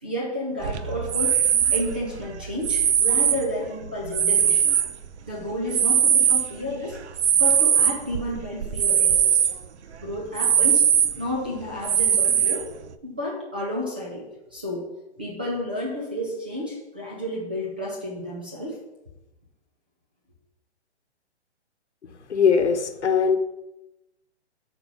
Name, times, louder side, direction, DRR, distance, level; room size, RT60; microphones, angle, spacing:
voice 1, 0.0-1.4 1.7-4.7 5.3-7.0 7.3-9.4 10.0-10.9 11.2-12.7 13.0-14.9 15.2-18.8, left 1 dB, 10° right, -3 dB, 0.4 m, -31 dB
sound 1, 0.6-5.3 5.7-9.6 9.9-10.0 10.4-11.4 11.8-12.8, right 8 dB, 80° right, 0.7 m, -21 dB
voice 2, 22.3-23.4, left 6 dB, 85° left, 7 dB, 1.4 m, -20 dB
8.0 x 4.7 x 5.6 m, 0.93 s
hypercardioid pair, 155°, 34 cm